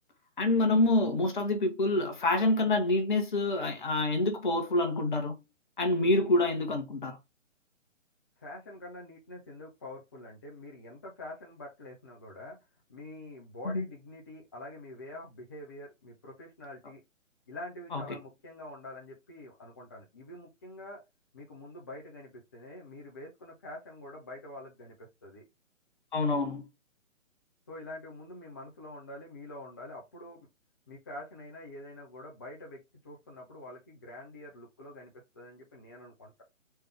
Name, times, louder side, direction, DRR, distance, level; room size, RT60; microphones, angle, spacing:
voice 1, 0.4-5.4 5.8-7.2 13.6-13.8 17.9-18.0 26.1-26.7, left 2 dB, 40° left, 1.2 m, -27 dB
voice 2, 8.4-12.6 12.9-17.0 17.5-21.0 21.3-25.5 27.7-30.5 30.9-36.4, left 1 dB, 15° left, 0.6 m, -46 dB
4.3 x 3.4 x 3.5 m
figure-of-eight pair, 135°, 39 cm